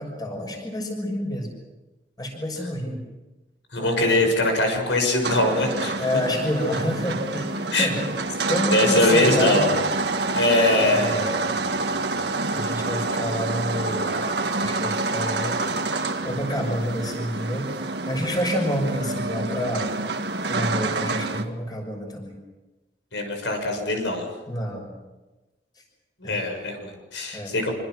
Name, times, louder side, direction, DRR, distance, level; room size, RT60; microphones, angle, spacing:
voice 1, 0.0-1.5 2.2-3.0 3.8-4.2 6.0-8.0 8.5-9.8 10.8-11.5 12.5-14.2 14.6-15.6 16.2-17.7 18.0-19.9 20.5-22.4 24.5-24.9 26.2-26.4 27.3-27.5, equal, 20° left, 2 dB, 6.3 m, -28 dB
voice 2, 3.7-6.0 7.7-7.9 8.7-9.7 10.3-11.2 23.1-24.2 26.2-27.7, left 2 dB, 85° left, 4 dB, 6.4 m, -22 dB
sound 1, 5.2-21.4, right 3 dB, 65° right, 1.8 m, -27 dB
26.5 x 25.5 x 6.4 m, 1.1 s
head